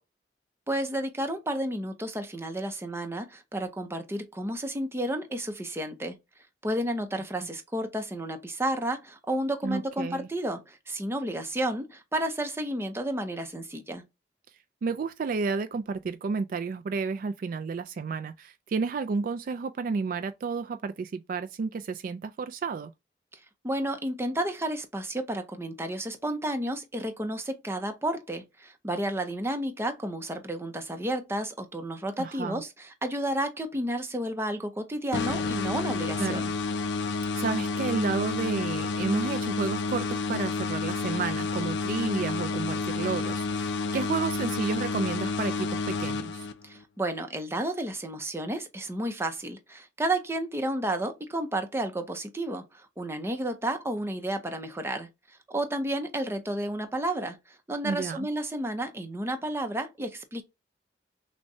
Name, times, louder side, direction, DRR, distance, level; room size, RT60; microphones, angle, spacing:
voice 1, 0.7-6.2 6.6-14.0 23.3-36.5 46.6-60.4, right 1 dB, 15° right, 0.6 m, -32 dB
voice 2, 9.6-10.3 14.8-22.9 32.2-32.6 36.2-36.4 37.4-46.5 57.8-58.3, right 4 dB, 50° right, 0.3 m, -31 dB
sound 1, 35.1-46.8, left 4 dB, 80° left, 0.5 m, -30 dB
6.2 x 2.2 x 2.6 m
head